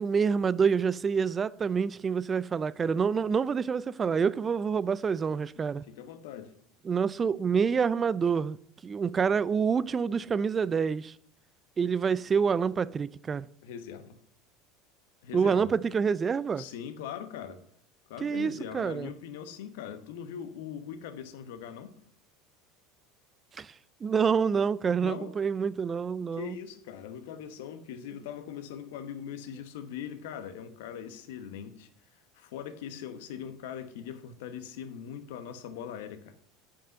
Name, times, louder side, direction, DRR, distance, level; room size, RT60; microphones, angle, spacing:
voice 1, 0.0-5.8 6.8-8.6 8.8-11.1 11.8-13.5 15.3-16.6 18.2-19.1 23.6-23.7 24.0-26.6, right 6 dB, 30° right, 0.4 m, -27 dB
voice 2, 5.9-6.5 13.6-14.2 15.2-15.7 16.6-17.6 18.1-21.9 25.0-25.3 26.3-31.9 32.3-36.3, left 8 dB, 75° left, 1.0 m, -41 dB
8.4 x 5.6 x 6.4 m
hypercardioid pair, 80°, 0 cm